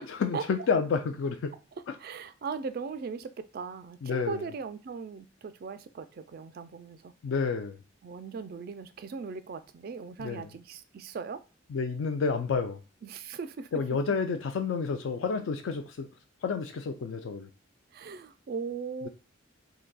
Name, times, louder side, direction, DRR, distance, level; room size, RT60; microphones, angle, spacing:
voice 1, 0.0-1.5 4.0-4.4 7.2-7.8 10.2-10.5 11.7-12.8 13.7-16.1 16.4-17.5, left 5 dB, 70° left, 0.4 m, -30 dB
voice 2, 2.0-7.1 8.0-11.4 13.0-13.7 17.9-19.1, right 5 dB, 50° right, 0.3 m, -38 dB
3.9 x 2.6 x 2.2 m
head